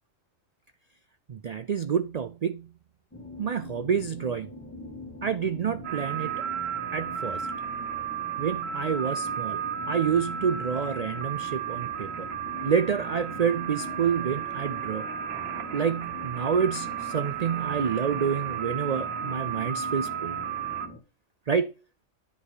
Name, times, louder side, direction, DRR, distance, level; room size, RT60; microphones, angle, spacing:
voice 1, 1.3-2.7 3.4-4.5 5.2-6.4 6.9-7.5 8.4-9.6 9.9-12.3 12.6-15.1 15.7-20.4 21.5-21.7, right 7 dB, 75° right, 0.3 m, -28 dB
sound 1, 3.1-21.0, left 2 dB, 10° left, 1.7 m, -43 dB
sound 2, 5.8-20.9, right 8 dB, 55° right, 1.1 m, -34 dB
9.9 x 5.6 x 3.9 m
omnidirectional pair, 1.3 m